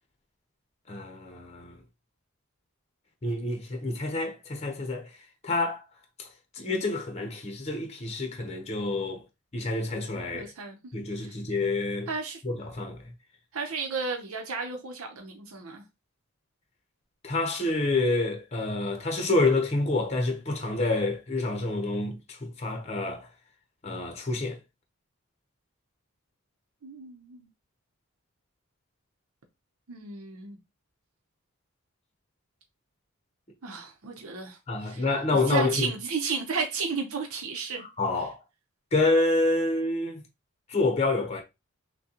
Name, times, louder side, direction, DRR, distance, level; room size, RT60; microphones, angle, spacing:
voice 1, 0.9-1.8 3.2-5.1 5.4-5.8 6.2-6.3 6.5-9.2 9.5-10.5 10.9-12.1 12.4-13.1 17.2-23.3 23.8-24.6 34.7-35.9 37.8-38.4 38.9-40.2 40.7-41.4, left 2 dB, 30° left, 0.8 m, -28 dB
voice 2, 10.3-10.8 11.1-11.4 12.1-12.4 13.5-15.8 26.8-27.5 29.9-30.6 33.6-35.0 35.5-37.8, right 5 dB, 80° right, 0.8 m, -33 dB
6.1 x 2.2 x 2.9 m
head